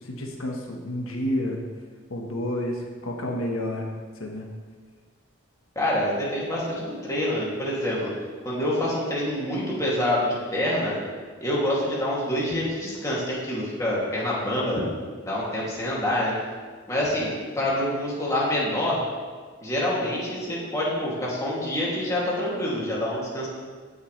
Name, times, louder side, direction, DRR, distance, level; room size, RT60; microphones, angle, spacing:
voice 1, 0.0-1.6 2.1-3.9 4.2-4.5, left 1 dB, 85° left, 0 dB, 1.3 m, -30 dB
voice 2, 5.8-8.1 8.4-11.0 11.4-14.8 15.2-16.3 16.9-19.0 19.6-23.5, left 1 dB, 15° left, -6 dB, 2.5 m, -26 dB
16.0 x 7.2 x 3.3 m, 1.5 s
head